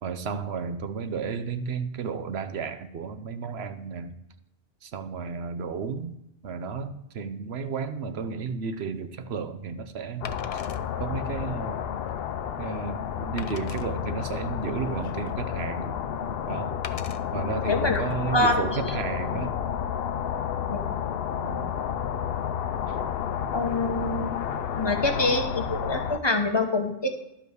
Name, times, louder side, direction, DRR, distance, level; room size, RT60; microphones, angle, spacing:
voice 1, 0.0-4.1 4.8-6.2 6.4-10.6 11.0-11.9 12.6-16.0 16.5-16.8 17.3-19.5 21.4-21.7 22.9-23.0, right 5 dB, 85° right, 9 dB, 1.1 m, -33 dB
Wood, 8.6-8.8 10.2-10.8 11.5-11.6 12.1-12.2 13.4-13.9 14.6-15.4 16.8-17.2 17.9-18.1, left 6 dB, 45° left, 0.5 m, -42 dB
sound 1, 10.2-26.2, left 8 dB, 70° left, 0.8 m, -31 dB
voice 2, 17.7-18.0 18.3-18.6 20.7-21.0 23.5-24.4 24.7-27.1, left 2 dB, 25° left, 5 dB, 1.0 m, -25 dB
11.5 x 5.4 x 6.3 m, 0.83 s
omnidirectional pair, 1.0 m